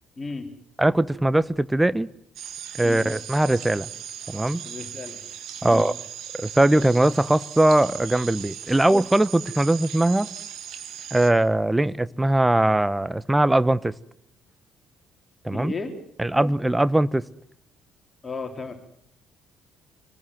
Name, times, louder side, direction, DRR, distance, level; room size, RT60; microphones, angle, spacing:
voice 1, 0.2-0.5 2.8-3.1 4.6-5.2 5.6-5.9 15.5-15.9 18.2-18.7, left 4 dB, 30° left, 4 dB, 4.1 m, -34 dB
voice 2, 0.8-2.1 2.8-3.9 4.3-4.6 5.6-5.9 6.4-10.3 11.1-13.9 15.4-15.7 16.2-17.2, right 1 dB, 10° right, 17 dB, 1.1 m, -20 dB
sound 1, 2.3-11.3, right 9 dB, 60° right, 2.5 m, -38 dB
26.0 x 20.0 x 7.8 m, 0.67 s
figure-of-eight pair, 50°, 0 cm